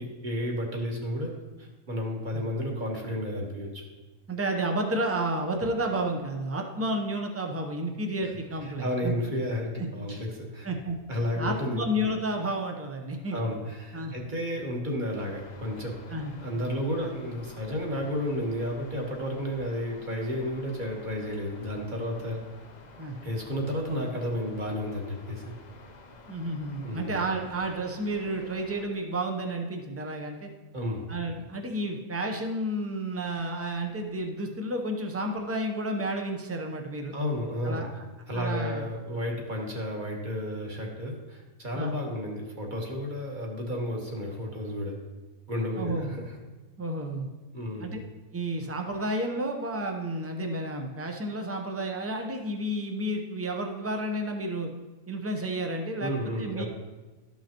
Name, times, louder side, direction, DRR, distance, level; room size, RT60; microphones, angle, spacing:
voice 1, 0.0-1.3 1.6-3.8 8.8-10.7 11.1-11.9 13.3-16.0 16.4-22.4 23.2-25.5 26.8-27.1 30.7-31.1 37.1-37.8 38.3-45.0 45.5-46.3 47.5-47.9 56.0-56.7, left 1 dB, 35° right, 0 dB, 1.4 m, -32 dB
voice 2, 4.3-9.1 10.6-11.0 11.4-13.4 13.9-14.1 16.1-16.3 17.0-17.1 23.0-23.2 26.3-30.5 31.1-37.2 37.6-38.0 38.3-38.8 41.7-41.9 45.8-46.1 46.8-47.3 47.8-48.0 48.3-54.7 55.1-56.1 56.4-56.6, right 1 dB, 15° right, 3 dB, 0.5 m, -31 dB
sound 1, 15.2-28.8, left 3 dB, 50° left, 0.5 m, -50 dB
13.0 x 5.6 x 2.9 m, 1.2 s
omnidirectional pair, 1.5 m